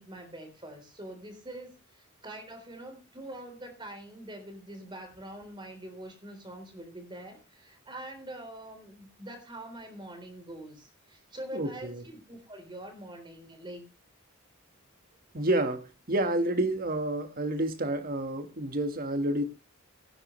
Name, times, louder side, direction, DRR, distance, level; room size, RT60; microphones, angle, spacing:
voice 1, 0.0-13.9, right 1 dB, 20° right, 3.8 m, -44 dB
voice 2, 11.5-12.0 15.3-19.4, right 1 dB, 45° right, 1.6 m, -29 dB
17.5 x 9.6 x 3.2 m
head